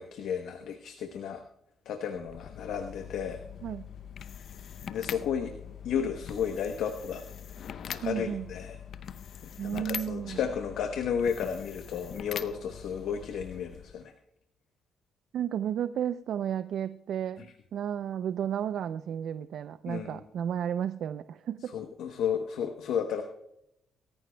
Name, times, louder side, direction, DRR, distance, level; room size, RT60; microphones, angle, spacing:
voice 1, 0.0-1.4 1.9-3.4 4.9-5.5 5.8-7.2 7.9-8.8 9.4-14.1 19.9-20.2 21.7-23.2, left 7 dB, 80° left, 5 dB, 1.0 m, -33 dB
sound 1, 2.1-14.1, left 8 dB, 60° left, 0.6 m, -43 dB
voice 2, 8.0-8.5 9.6-10.4 15.3-21.7, right 9 dB, 70° right, 12 dB, 0.4 m, -33 dB
23.5 x 14.0 x 2.2 m, 0.81 s
cardioid pair, 90°, 0 cm